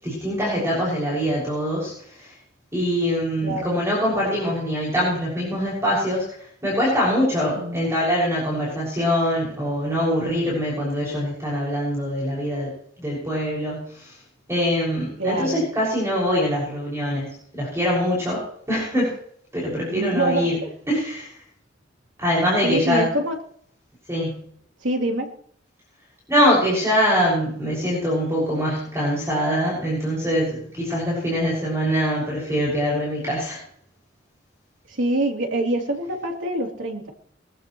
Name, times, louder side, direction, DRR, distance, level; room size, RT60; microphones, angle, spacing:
voice 1, 0.0-2.3 2.7-6.3 6.6-12.7 13.0-14.1 14.5-19.1 19.5-20.6 20.9-21.3 22.2-23.1 24.1-24.4 26.3-33.6, equal, 15° right, -5 dB, 6.4 m, -23 dB
voice 2, 3.4-3.8 7.3-7.9 15.2-15.7 19.9-20.7 22.6-23.4 24.8-25.3 34.9-37.1, right 1 dB, 80° right, 0 dB, 3.5 m, -25 dB
23.0 x 14.5 x 3.2 m, 0.63 s
head